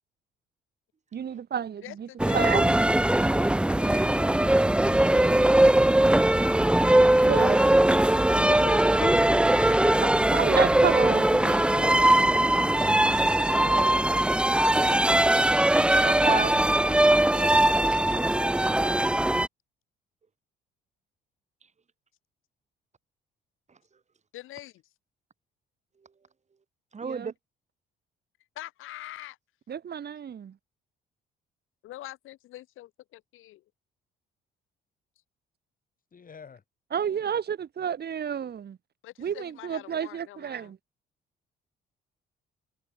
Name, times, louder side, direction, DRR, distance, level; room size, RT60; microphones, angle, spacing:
voice 1, 1.1-2.7 7.2-7.6 10.3-11.3 27.0-27.3 29.7-30.5 36.9-38.8 39.2-40.8, right 8 dB, 50° right, 3.4 m, -30 dB
voice 2, 1.8-6.1 8.5-10.1 24.3-24.8 28.6-29.4 31.8-33.6 39.0-40.7, left 15 dB, 75° left, 7.0 m, -44 dB
sound 1, 2.2-19.5, right 1 dB, 5° right, 0.5 m, -21 dB
voice 3, 11.3-12.3 12.6-13.1 13.7-14.1 36.1-36.6, left 6 dB, 40° left, 7.7 m, -43 dB
voice 4, 13.5-13.9 16.0-18.1 18.4-18.9 26.9-27.3, right 5 dB, 35° right, 2.2 m, -36 dB
supercardioid pair, 70°, 21 cm